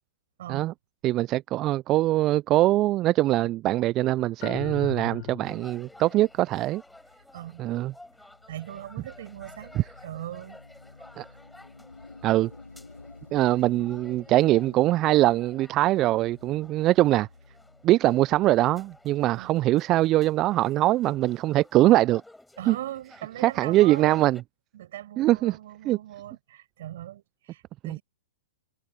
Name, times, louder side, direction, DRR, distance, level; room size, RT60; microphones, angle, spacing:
voice 1, 0.4-0.7 7.3-7.6 8.5-10.6 19.4-19.5 22.6-24.2 24.7-28.0, right 13 dB, 60° right, 7.6 m, -40 dB
voice 2, 1.0-6.8 7.6-7.9 9.8-9.9 11.2-11.3 12.2-12.5 13.3-17.3 17.8-22.2 22.7-22.8 23.4-24.4 25.2-25.6 25.8-26.0 27.8-28.0, right 16 dB, 30° right, 0.5 m, -22 dB
sound 1, 4.4-5.9, left 25 dB, 45° left, 2.0 m, -37 dB
sound 2, 5.4-24.4, left 1 dB, 5° left, 7.6 m, -53 dB
sound 3, 5.9-19.7, left 3 dB, 90° left, 6.1 m, -52 dB
figure-of-eight pair, 110°, 0 cm